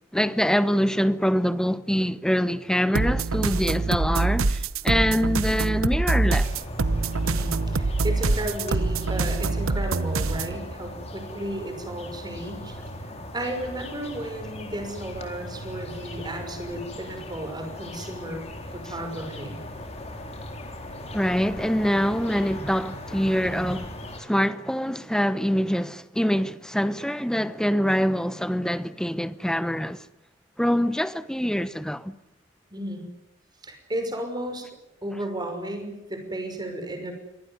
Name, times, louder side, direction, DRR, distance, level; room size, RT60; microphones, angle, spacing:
voice 1, 0.1-6.5 21.1-23.9 24.2-30.0 30.6-32.2, equal, 5° left, 0.9 m, -24 dB
sound 1, 2.9-10.6, right 3 dB, 90° right, 0.9 m, -25 dB
sound 2, 6.4-24.2, left 1 dB, 30° left, 4.0 m, -38 dB
voice 2, 7.2-12.8 13.3-18.4 18.7-19.6 23.4-23.7 32.7-33.0 33.6-34.7 35.0-37.1, right 1 dB, 20° right, 5.8 m, -34 dB
24.5 x 18.5 x 9.7 m
head